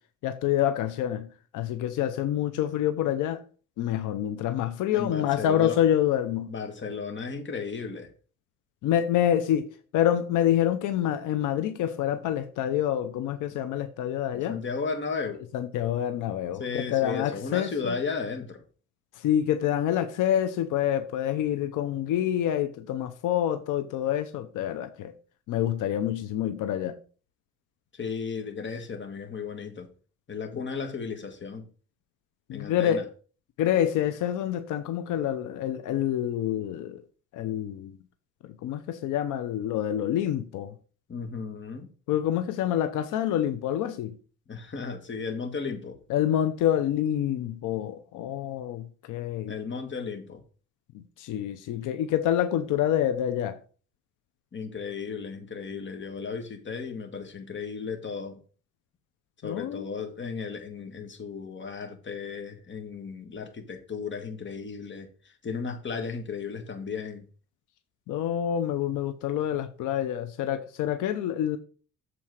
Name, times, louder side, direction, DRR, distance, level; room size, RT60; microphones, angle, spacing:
voice 1, 0.2-1.3 1.5-3.4 3.8-6.5 8.8-9.7 9.9-14.6 15.5-18.0 19.1-25.1 25.5-27.0 32.5-33.0 33.6-37.0 37.3-38.0 38.4-40.7 42.1-44.2 46.1-49.5 50.9-53.6 59.4-59.9 68.1-71.6, left 11 dB, 90° left, 0.8 m, -27 dB
voice 2, 4.9-5.8 6.5-8.1 14.3-15.4 16.6-18.6 27.9-29.9 30.3-31.7 32.5-33.0 41.1-41.9 44.5-46.0 49.5-50.4 54.5-58.4 59.4-67.3, left 5 dB, 40° left, 1.8 m, -35 dB
7.7 x 4.2 x 6.3 m
cardioid pair, 90°, 30 cm